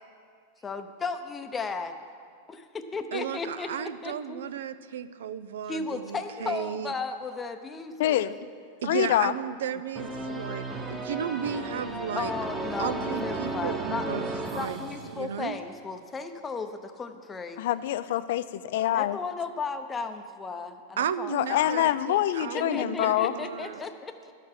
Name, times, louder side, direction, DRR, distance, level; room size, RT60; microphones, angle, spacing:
voice 1, 0.6-1.9 2.5-4.4 5.7-8.3 12.2-17.6 18.9-21.9 22.5-24.3, left 4 dB, 15° left, 7 dB, 0.6 m, -35 dB
voice 2, 3.1-6.9 8.8-12.3 12.8-14.2 14.5-14.8 15.1-15.6 21.0-23.8, right 8 dB, 85° right, 14 dB, 0.4 m, -34 dB
voice 3, 8.0-8.3 8.8-9.3 17.6-19.2 21.3-23.3, left 13 dB, 65° left, 14 dB, 0.4 m, -25 dB
sound 1, 9.9-15.6, right 2 dB, 10° right, 1.0 m, -34 dB
12.0 x 6.6 x 5.8 m, 2.1 s
supercardioid pair, 140°, 0 cm